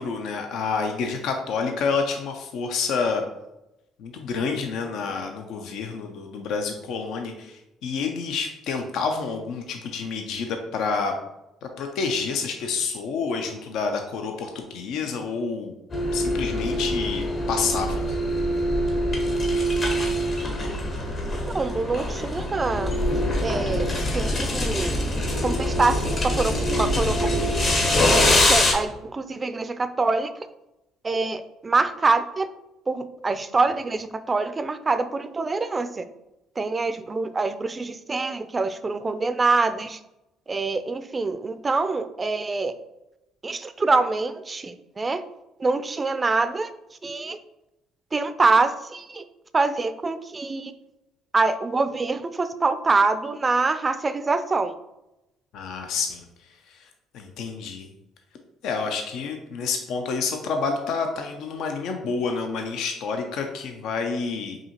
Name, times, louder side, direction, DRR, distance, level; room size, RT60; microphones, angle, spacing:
voice 1, 0.0-3.2 4.0-11.1 11.6-15.7 16.1-18.0 55.5-56.9 57.1-57.9 58.6-64.6, left 5 dB, 70° left, 4 dB, 0.4 m, -28 dB
sound 1, 15.9-28.7, left 1 dB, 45° left, 1.0 m, -24 dB
voice 2, 21.5-22.9 23.4-23.9 24.1-25.0 25.4-27.9 28.5-30.3 31.0-32.5 32.9-36.0 36.6-40.0 40.5-42.7 43.4-45.2 45.6-46.7 47.0-47.4 48.1-49.2 49.5-50.7 51.3-54.7, right 3 dB, 30° right, 11 dB, 0.4 m, -25 dB
4.8 x 2.7 x 2.8 m, 0.92 s
hypercardioid pair, 60°, 0 cm